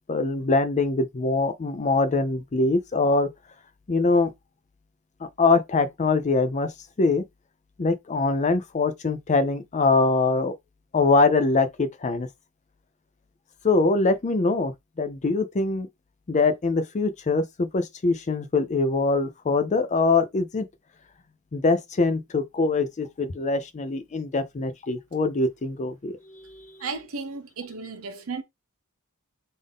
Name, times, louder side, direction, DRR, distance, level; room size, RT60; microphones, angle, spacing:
voice 1, 0.1-3.3 3.9-4.3 5.4-6.7 7.0-7.2 7.8-10.5 10.9-12.3 13.6-14.7 15.0-15.9 16.3-20.6 21.5-26.7, left 3 dB, 35° left, 0.5 m, -23 dB
voice 2, 26.8-28.4, right 4 dB, 70° right, 0.8 m, -34 dB
3.6 x 2.6 x 3.5 m
head